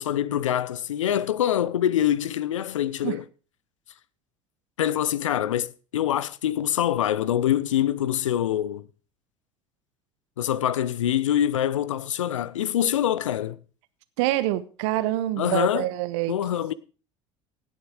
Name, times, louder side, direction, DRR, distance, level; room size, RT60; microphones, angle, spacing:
voice 1, 0.0-3.2 4.8-8.8 10.4-13.6 15.4-15.9 16.3-16.7, left 11 dB, 85° left, 0.5 m, -25 dB
voice 2, 14.2-16.4, right 15 dB, 70° right, 0.9 m, -26 dB
17.5 x 7.2 x 4.8 m
hypercardioid pair, 65°, 16 cm